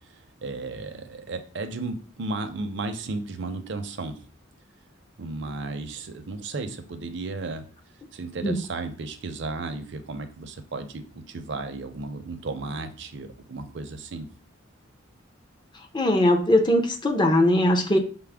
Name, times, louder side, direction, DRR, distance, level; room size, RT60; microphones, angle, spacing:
voice 1, 0.0-4.2 5.2-7.6 8.1-14.3, right 3 dB, 60° right, 7 dB, 0.5 m, -34 dB
voice 2, 15.9-18.0, left 1 dB, 20° left, 3 dB, 0.5 m, -20 dB
5.8 x 2.0 x 3.4 m, 0.40 s
head